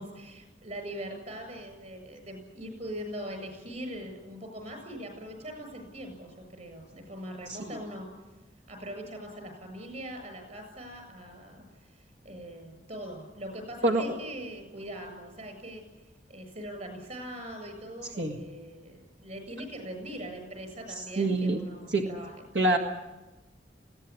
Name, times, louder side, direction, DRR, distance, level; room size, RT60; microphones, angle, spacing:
voice 1, 0.0-8.1 8.7-15.8 16.3-22.3, equal, 45° right, 6 dB, 7.4 m, -41 dB
voice 2, 21.2-21.6 21.9-22.0 22.6-22.8, right 2 dB, 85° right, 3 dB, 1.8 m, -24 dB
20.5 x 17.0 x 9.9 m, 1.1 s
head